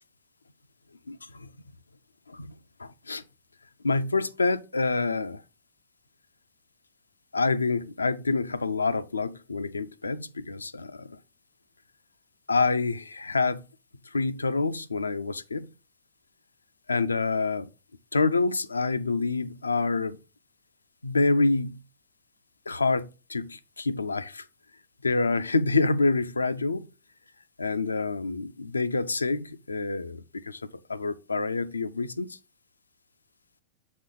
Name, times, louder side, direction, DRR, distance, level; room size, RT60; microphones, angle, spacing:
voice 1, 1.1-1.5 2.3-2.5 2.8-3.2 3.8-5.4 7.3-11.2 12.5-13.6 14.1-15.7 16.9-17.7 18.1-20.2 21.0-21.8 22.7-24.4 25.0-26.9 27.6-32.4, left 3 dB, 80° left, 0.4 m, -27 dB
7.4 x 4.2 x 3.8 m
figure-of-eight pair, 90°, 0 cm